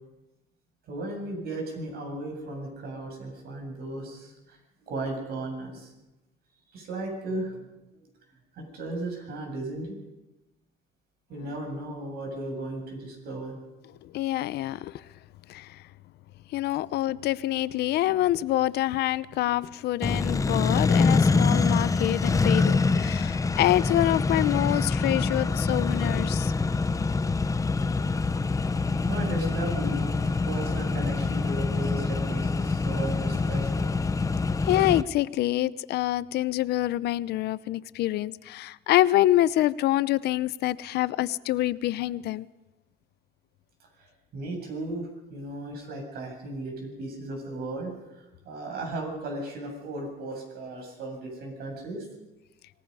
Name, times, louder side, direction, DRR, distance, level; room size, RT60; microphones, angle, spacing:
voice 1, 0.9-4.6 4.8-5.9 6.7-7.7 7.9-8.0 8.6-10.0 11.3-13.5 29.1-33.9 44.0-44.1 44.3-52.1, right 2 dB, 70° right, 2 dB, 7.8 m, -35 dB
voice 2, 14.1-14.9 15.5-15.8 16.5-26.5 34.6-42.5, left 14 dB, 75° left, 17 dB, 0.7 m, -26 dB
Accelerating revving vroom, 20.0-35.0, left 4 dB, 20° left, 0.8 m, -25 dB
26.0 x 18.5 x 5.5 m, 0.99 s
cardioid pair, 110°, 17 cm